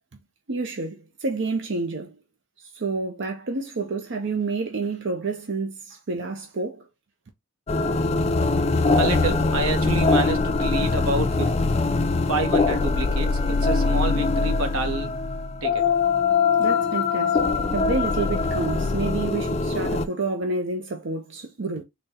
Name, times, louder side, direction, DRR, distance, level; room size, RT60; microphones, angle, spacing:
voice 1, 0.5-2.2 2.6-6.9 16.6-21.8, right 3 dB, 55° right, 0.6 m, -29 dB
sound 1, 7.7-20.1, left 3 dB, 30° left, 0.3 m, -22 dB
voice 2, 9.0-11.6 12.3-15.2 15.6-15.9, right 2 dB, 85° right, 1.0 m, -28 dB
4.1 x 2.2 x 3.5 m
head